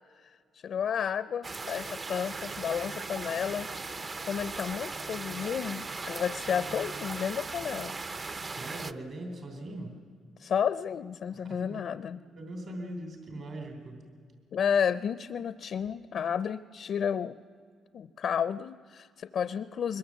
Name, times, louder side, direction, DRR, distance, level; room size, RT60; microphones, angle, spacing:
voice 1, 0.6-3.7 4.3-7.9 10.4-12.2 14.5-17.4 17.9-20.0, left 7 dB, 60° left, 14 dB, 0.5 m, -31 dB
sound 1, 1.4-8.9, right 3 dB, 35° right, 0.7 m, -38 dB
voice 2, 8.4-10.0 11.3-11.8 12.2-14.0, right 1 dB, 50° right, 4 dB, 3.2 m, -41 dB
23.0 x 21.5 x 7.4 m, 2.1 s
cardioid pair, 90°, 0 cm